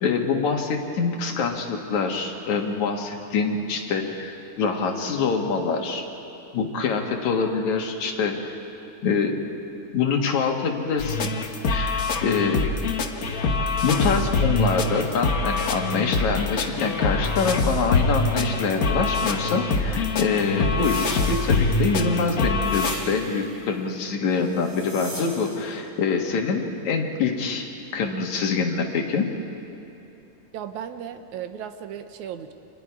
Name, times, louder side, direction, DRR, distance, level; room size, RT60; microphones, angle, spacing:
voice 1, 0.0-6.1 6.5-8.6 9.0-9.4 9.9-11.3 11.7-12.7 13.8-29.3, left 5 dB, 75° left, 2 dB, 3.1 m, -25 dB
sound 1, 11.0-23.0, left 3 dB, 55° left, 1.0 m, -24 dB
sound 2, 20.8-22.0 22.6-23.5 24.5-25.7, right 1 dB, 20° right, 4.8 m, -38 dB
voice 2, 30.5-32.5, right 9 dB, 80° right, 8 dB, 2.4 m, -35 dB
29.5 x 26.0 x 4.8 m, 3.0 s
omnidirectional pair, 3.4 m